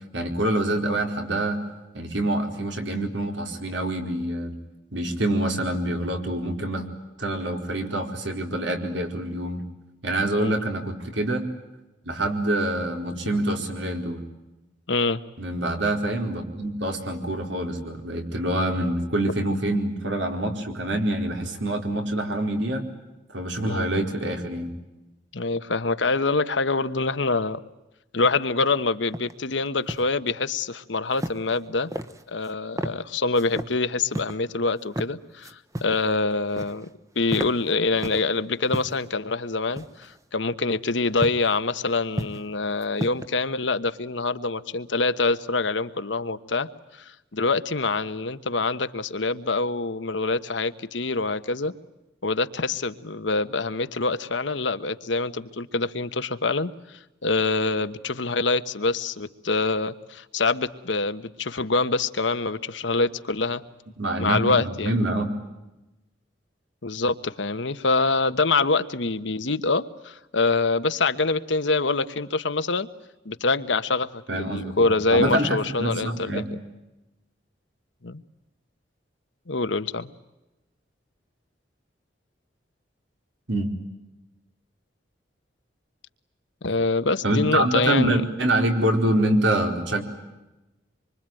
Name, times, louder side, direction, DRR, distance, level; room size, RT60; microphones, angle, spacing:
voice 1, 0.1-1.6 1.9-4.6 4.9-6.8 7.2-9.7 10.0-11.5 12.0-14.2 15.4-22.9 23.3-24.7 64.0-65.3 74.3-76.4 83.5-83.7 87.2-90.0, right 1 dB, 85° right, 4 dB, 4.6 m, -26 dB
voice 2, 14.9-15.2 23.6-23.9 25.3-27.6 28.1-31.9 32.3-36.9 37.1-51.7 52.2-63.6 64.2-65.0 66.8-72.9 73.2-76.6 78.0-78.2 79.5-80.1 86.6-88.2, left 3 dB, 85° left, 11 dB, 1.2 m, -25 dB
sound 1, 29.1-29.3 29.7-30.1 31.1-31.6 31.9-32.5 32.8-33.0 33.4-33.7 34.1-34.4 34.8-35.1 35.4-36.0 36.3-36.9 37.2-38.3 38.7-39.1 39.8-40.2 41.2-41.5 41.9-42.5 42.8-43.3, equal, 15° right, 1.1 m, -33 dB
26.0 x 25.0 x 9.2 m, 1.0 s
head